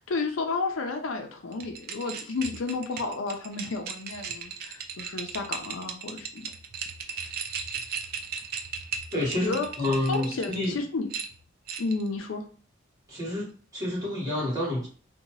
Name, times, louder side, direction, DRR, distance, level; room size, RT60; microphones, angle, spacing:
voice 1, 0.0-6.5 9.3-9.7 10.1-11.1 11.8-12.4, left 3 dB, 80° left, 5 dB, 0.5 m, -32 dB
sound 1, 1.5-10.7 11.1-12.1, right 6 dB, 50° right, 0.3 m, -37 dB
voice 2, 9.1-10.8 13.1-14.9, left 1 dB, 20° right, -7 dB, 1.4 m, -29 dB
2.7 x 2.2 x 2.9 m, 0.41 s
head